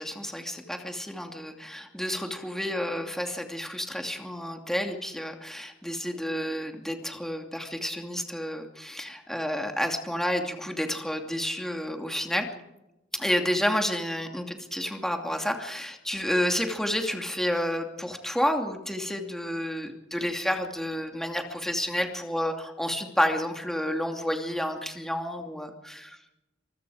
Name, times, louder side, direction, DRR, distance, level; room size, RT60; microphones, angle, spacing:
voice 1, 0.0-12.5 13.1-26.2, equal, ahead, 3 dB, 2.6 m, -30 dB
25.0 x 23.5 x 5.0 m, 0.93 s
head